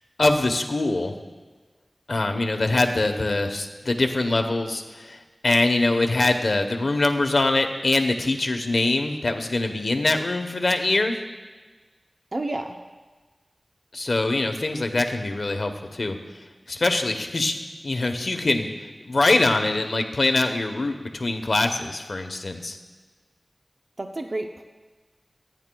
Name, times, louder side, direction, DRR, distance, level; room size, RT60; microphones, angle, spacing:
voice 1, 0.2-1.1 2.1-11.2 13.9-16.2 16.7-17.6 17.8-18.7 19.0-22.8, left 2 dB, 70° left, 6 dB, 1.0 m, -23 dB
voice 2, 12.3-12.8 24.0-24.6, right 2 dB, 50° right, 3 dB, 0.6 m, -30 dB
26.5 x 9.9 x 2.3 m, 1.3 s
wide cardioid pair, 70°, 0 cm